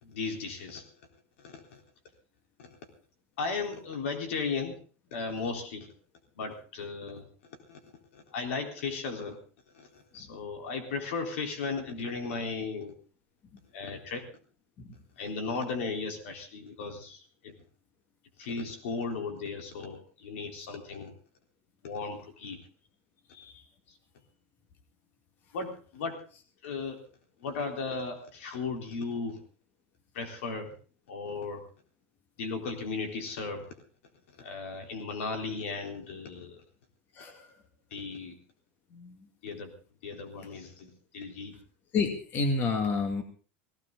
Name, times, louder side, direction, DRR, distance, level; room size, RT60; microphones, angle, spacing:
voice 1, 0.0-0.9 1.4-1.8 2.6-2.7 3.4-4.8 5.1-5.9 6.4-7.8 8.1-9.4 9.7-12.9 13.7-14.2 15.2-17.5 18.4-21.1 21.8-22.6 23.9-24.0 25.5-26.2 26.6-27.0 27.4-29.4 30.1-30.7 31.1-31.6 32.4-33.8 34.4-36.6 37.9-38.4 39.4-39.7 40.0-41.6, left 4 dB, 85° left, 4 dB, 3.9 m, -36 dB
voice 2, 41.9-43.2, left 4 dB, 30° left, 6 dB, 2.1 m, -29 dB
18.0 x 16.0 x 4.0 m, 0.39 s
supercardioid pair, 160°, 7 cm